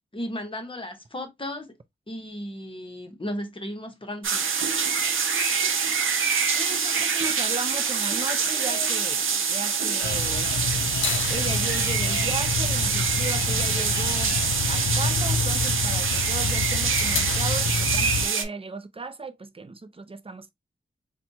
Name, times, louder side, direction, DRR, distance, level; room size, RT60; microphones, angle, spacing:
voice 1, 0.1-1.8 2.1-4.5, left 1 dB, 25° left, 0.9 m, -35 dB
sound 1, 4.2-18.4, right 6 dB, 90° right, 0.6 m, -25 dB
voice 2, 6.5-10.5 11.3-14.3 14.6-20.5, right 3 dB, 30° right, 0.5 m, -36 dB
sound 2, 7.6-15.4, left 3 dB, 55° left, 0.9 m, -42 dB
sound 3, 10.0-18.3, left 6 dB, 75° left, 0.4 m, -28 dB
4.3 x 2.2 x 2.7 m
wide cardioid pair, 85°, 20 cm